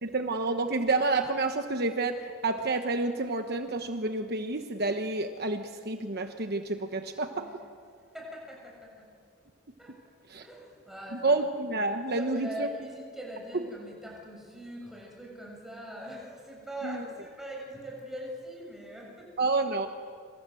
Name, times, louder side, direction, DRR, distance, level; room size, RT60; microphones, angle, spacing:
voice 1, 0.0-7.5 10.3-10.5 11.1-12.7 16.8-17.0 19.4-19.9, right 3 dB, 50° right, 6 dB, 1.1 m, -29 dB
voice 2, 8.1-9.1 9.8-9.9 10.4-11.3 12.0-19.4, equal, ahead, -2 dB, 6.6 m, -42 dB
27.5 x 25.5 x 7.8 m, 2.3 s
head